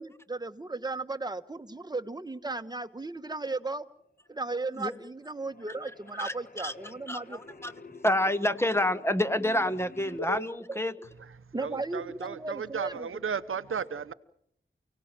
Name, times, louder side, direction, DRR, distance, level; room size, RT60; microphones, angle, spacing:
voice 1, 0.0-3.8 4.3-7.4 10.7-10.8 11.5-13.1, right 3 dB, 20° right, 1.4 m, -35 dB
sound 1, 4.5-5.0 5.3-10.4, left 2 dB, 45° left, 1.3 m, -46 dB
voice 2, 6.2-6.7 7.1-7.7 8.0-10.9, left 1 dB, 10° left, 1.3 m, -28 dB
voice 3, 11.6-14.1, right 6 dB, 85° right, 0.9 m, -34 dB
29.5 x 18.0 x 7.6 m
wide cardioid pair, 70°, 21 cm